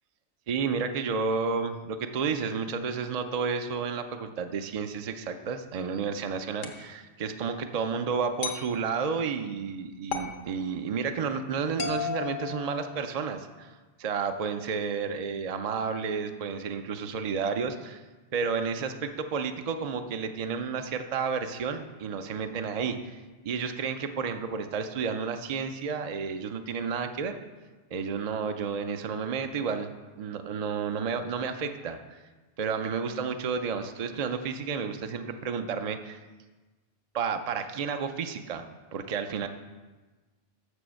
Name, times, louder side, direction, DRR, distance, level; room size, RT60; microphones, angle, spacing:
voice 1, 0.5-18.0 18.3-27.4 27.9-29.9 30.2-32.2 32.6-36.2 37.1-39.5, right 5 dB, 60° right, 7 dB, 0.4 m, -31 dB
sound 1, 6.6-6.9 8.4-8.7 10.1-10.4 11.8-13.2, left 6 dB, 90° left, 1.3 m, -34 dB
7.0 x 6.4 x 6.2 m, 1.3 s
omnidirectional pair, 1.3 m